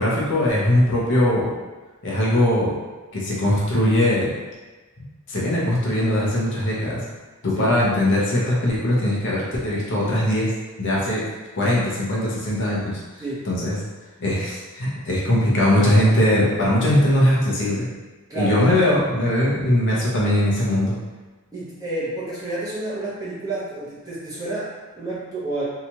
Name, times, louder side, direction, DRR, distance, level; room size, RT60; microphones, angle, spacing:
voice 1, 0.0-1.5 2.0-2.7 3.1-4.3 5.3-7.0 7.4-10.5 10.8-11.2 11.6-13.0 13.4-13.8 14.2-17.9 18.4-20.9, left 1 dB, 55° left, -6 dB, 0.7 m, -20 dB
voice 2, 21.5-25.6, right 2 dB, 15° right, -9 dB, 0.8 m, -30 dB
2.8 x 2.3 x 2.9 m, 1.2 s
head